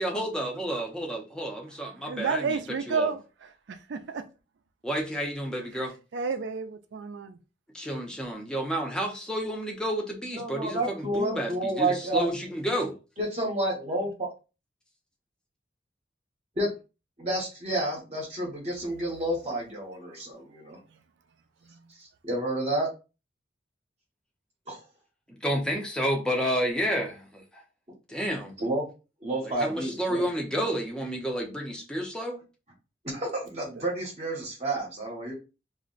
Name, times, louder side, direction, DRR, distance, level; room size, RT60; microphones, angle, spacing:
voice 1, 0.0-3.1 4.8-6.0 7.7-12.9 25.3-27.6 28.1-28.5 29.4-32.4, equal, 5° left, 0.6 m, -30 dB
voice 2, 2.1-3.2 3.9-4.2 6.1-7.4, right 5 dB, 80° right, 0.4 m, -30 dB
voice 3, 10.3-12.3 13.2-14.3 16.6-16.7 17.2-20.8 22.0-22.9 24.7-24.8 28.6-28.9 29.2-30.3 33.0-35.3, right 1 dB, 35° right, 0.8 m, -30 dB
2.4 x 2.1 x 3.8 m
head